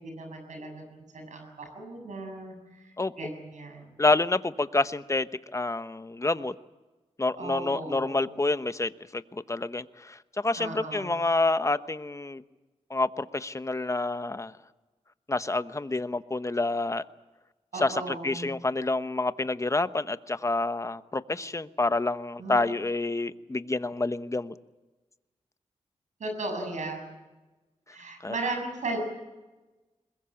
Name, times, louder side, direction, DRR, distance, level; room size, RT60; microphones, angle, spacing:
voice 1, 0.0-2.5 3.2-3.9 7.4-8.2 10.6-11.1 17.7-18.5 22.4-22.6 26.2-27.1 27.9-29.0, right 2 dB, 85° right, 4 dB, 7.1 m, -36 dB
voice 2, 4.0-6.5 7.2-12.4 12.9-14.5 15.3-17.0 17.7-24.5 28.2-28.4, left 2 dB, 25° left, 12 dB, 1.0 m, -28 dB
21.5 x 21.5 x 8.6 m, 1.2 s
cardioid pair, 65°, 12 cm